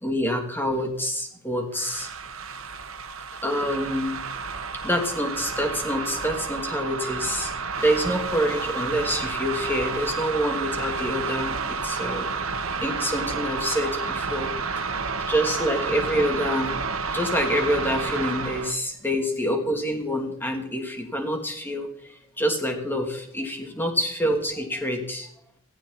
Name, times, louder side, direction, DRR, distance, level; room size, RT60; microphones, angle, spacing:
voice 1, 0.0-2.1 3.4-4.2 4.8-7.5 7.8-12.3 12.8-14.5 15.3-16.8 17.1-21.9 22.4-25.3, equal, 10° left, 2 dB, 2.9 m, -26 dB
sound 1, 1.7-18.8, right 4 dB, 75° right, 1.5 m, -30 dB
17.5 x 15.0 x 4.2 m, 0.70 s
head